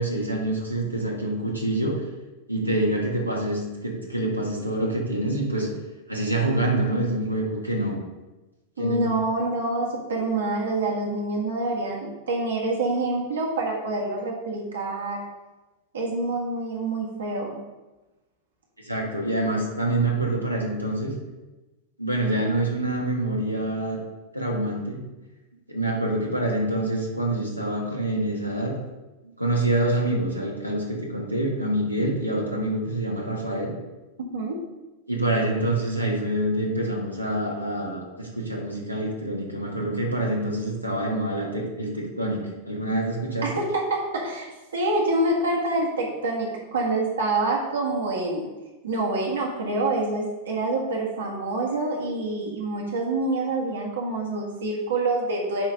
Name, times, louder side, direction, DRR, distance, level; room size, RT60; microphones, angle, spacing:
voice 1, 0.0-1.9 2.5-5.7 6.1-8.0 8.8-9.1 18.8-21.2 22.0-24.0 24.3-25.0 25.7-28.8 29.2-33.7 35.1-43.5, right 1 dB, 90° right, -1 dB, 1.6 m, -26 dB
voice 2, 8.8-15.2 15.9-17.6 34.3-34.6 43.4-48.5 48.8-55.7, right 2 dB, 65° right, -2 dB, 1.6 m, -26 dB
9.5 x 3.2 x 5.2 m, 1.1 s
figure-of-eight pair, 90°, 0 cm